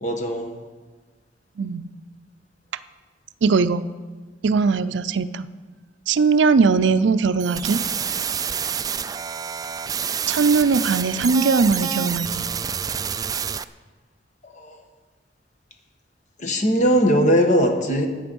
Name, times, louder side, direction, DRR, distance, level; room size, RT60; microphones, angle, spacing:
voice 1, 0.0-0.5 14.4-14.8 16.4-18.1, equal, 45° left, 5 dB, 1.4 m, -20 dB
voice 2, 1.6-1.9 3.4-3.8 4.4-5.5 6.1-7.8 10.3-12.4, right 4 dB, 85° right, 13 dB, 0.5 m, -20 dB
sound 1, 7.4-13.6, right 7 dB, 20° right, 0.3 m, -28 dB
13.5 x 9.2 x 5.3 m, 1.4 s
head